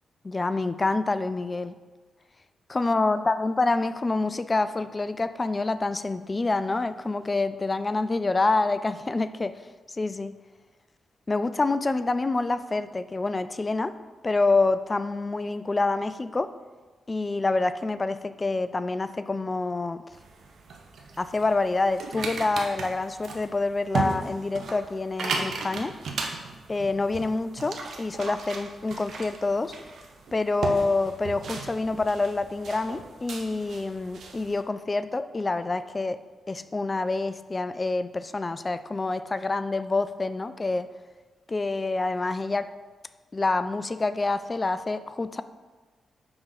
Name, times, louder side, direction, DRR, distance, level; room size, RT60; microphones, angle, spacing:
voice 1, 0.2-1.7 2.7-9.6 9.9-10.3 11.3-13.9 14.2-16.5 17.1-20.0 21.2-25.9 26.7-29.7 30.3-36.2 36.5-40.9 41.5-42.7 43.3-45.4, left 3 dB, 35° left, 12 dB, 0.4 m, -27 dB
sound 1, 20.1-34.6, right 4 dB, 65° right, 0.7 m, -36 dB
5.0 x 3.7 x 5.4 m, 1.3 s
hypercardioid pair, 40°, 0 cm